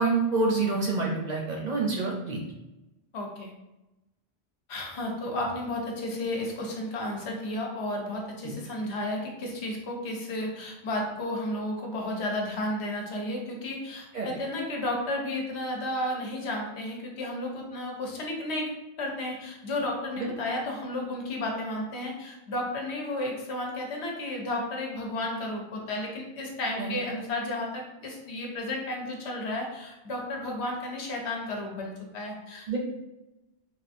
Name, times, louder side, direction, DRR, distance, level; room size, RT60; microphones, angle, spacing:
voice 1, 0.0-2.4 14.1-14.3 20.2-20.3 26.8-26.9 32.7-32.8, right 3 dB, 55° right, -2 dB, 0.5 m, -27 dB
voice 2, 3.1-3.5 4.7-18.7 19.0-32.8, left 1 dB, 80° left, 0 dB, 1.0 m, -33 dB
3.4 x 2.4 x 2.5 m, 0.98 s
omnidirectional pair, 1.1 m